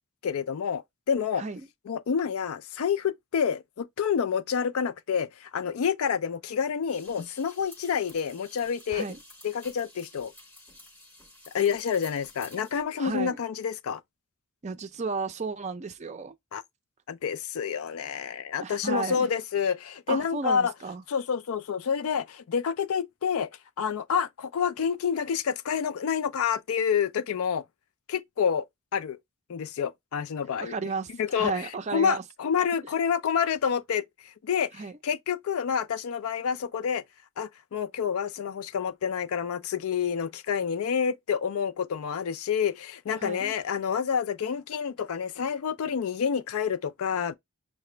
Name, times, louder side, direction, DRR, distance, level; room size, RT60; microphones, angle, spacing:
voice 1, 0.2-1.4 1.9-9.1 9.4-10.3 11.5-14.0 16.5-16.6 17.1-20.7 21.1-23.5 23.8-27.6 28.1-28.7 28.9-29.2 29.5-30.8 31.2-31.6 31.9-37.0 37.4-47.4, left 7 dB, 75° left, 0.4 m, -28 dB
voice 2, 1.3-1.7 8.9-9.2 13.0-13.4 14.6-16.3 18.6-19.3 20.1-21.0 30.6-32.2 34.7-34.9 43.2-43.5, right 4 dB, 30° right, 0.4 m, -33 dB
sound 1, 6.9-12.8, left 1 dB, 10° left, 0.7 m, -51 dB
5.8 x 2.1 x 3.2 m
head